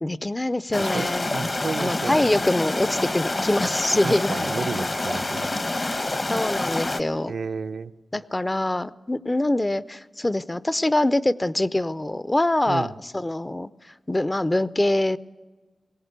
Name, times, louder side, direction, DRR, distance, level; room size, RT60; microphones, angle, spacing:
voice 1, 0.0-1.3 1.8-4.3 5.2-5.3 5.8-6.0 6.3-7.3 8.1-13.7 14.1-15.2, left 1 dB, 20° left, 15 dB, 0.6 m, -24 dB
sound 1, 0.7-7.0, left 2 dB, 35° left, 1.0 m, -27 dB
voice 2, 0.8-2.3 4.0-5.6 7.3-7.9 12.7-12.9, right 5 dB, 75° right, 8 dB, 0.6 m, -32 dB
21.0 x 17.0 x 8.2 m, 1.3 s
wide cardioid pair, 75°, 0 cm